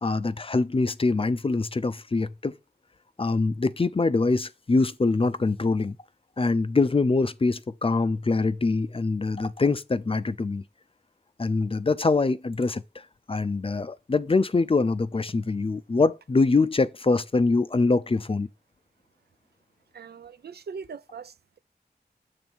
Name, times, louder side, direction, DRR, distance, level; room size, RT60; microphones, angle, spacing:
voice 1, 0.0-2.5 3.2-6.0 6.4-10.6 11.4-12.8 13.3-18.5, left 3 dB, 35° left, 0.4 m, -24 dB
voice 2, 19.9-21.6, right 5 dB, 70° right, 0.4 m, -41 dB
7.0 x 3.3 x 6.1 m
wide cardioid pair, 75°, 17 cm